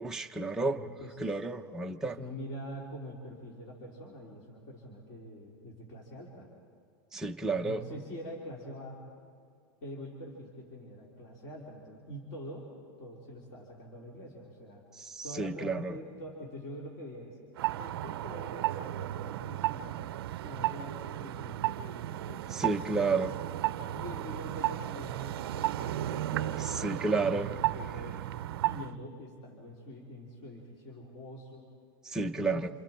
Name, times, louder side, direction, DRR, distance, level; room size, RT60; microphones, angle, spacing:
voice 1, 0.0-0.8 1.2-2.1 7.1-7.8 15.0-15.9 22.5-23.3 26.8-27.6 32.1-32.7, right 3 dB, 5° right, 2 dB, 0.6 m, -31 dB
voice 2, 0.5-1.3 1.8-6.5 7.5-9.2 9.8-12.7 13.0-14.8 15.2-17.4 17.8-20.1 20.4-23.4 23.9-26.9 27.2-28.3 28.6-31.7 32.2-32.6, equal, 40° left, -3 dB, 3.6 m, -45 dB
sound 1, 17.6-28.9, right 14 dB, 75° right, 0.6 m, -34 dB
28.5 x 28.0 x 4.4 m, 2.3 s
supercardioid pair, 170°, 13 cm